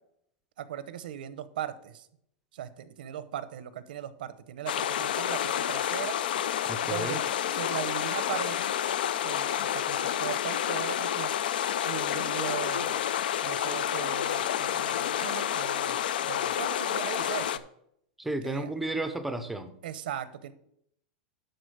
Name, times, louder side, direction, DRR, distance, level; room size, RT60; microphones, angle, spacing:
voice 1, 0.6-2.1 2.5-6.2 6.8-8.6 9.2-11.3 11.8-13.0 13.4-17.6 18.4-18.7 19.8-20.5, right 10 dB, 80° right, 14 dB, 0.8 m, -38 dB
sound 1, 4.7-17.6, left 10 dB, 85° left, 0.5 m, -29 dB
voice 2, 6.7-7.2 18.2-19.7, right 2 dB, 5° right, 10 dB, 0.5 m, -33 dB
11.5 x 4.0 x 6.7 m, 0.72 s
supercardioid pair, 175°, 5 cm